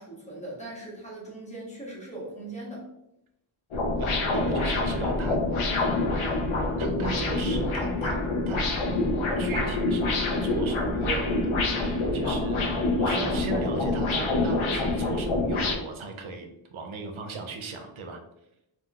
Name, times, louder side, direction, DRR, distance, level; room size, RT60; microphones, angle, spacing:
voice 1, 0.0-2.9, right 1 dB, 15° left, -4 dB, 1.1 m, -40 dB
sound 1, 3.7-15.8, left 2 dB, 80° left, 0.6 m, -26 dB
voice 2, 4.0-5.4 6.8-8.2 8.5-8.6 9.4-10.1 10.4-18.2, right 3 dB, 80° right, 4 dB, 0.6 m, -37 dB
3.7 x 2.3 x 2.3 m, 0.84 s
wide cardioid pair, 65°, 48 cm